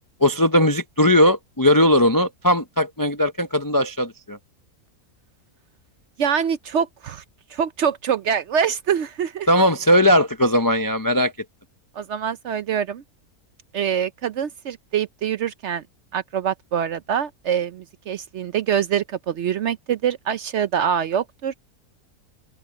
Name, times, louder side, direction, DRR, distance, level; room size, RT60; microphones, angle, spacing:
voice 1, 0.2-4.4 9.5-11.3, left 1 dB, 30° left, 0.3 m, -18 dB
voice 2, 6.2-7.2 7.5-9.5 12.0-13.0 13.7-15.8 16.1-21.5, right 8 dB, 60° right, 0.8 m, -24 dB
open air
omnidirectional pair, 1.6 m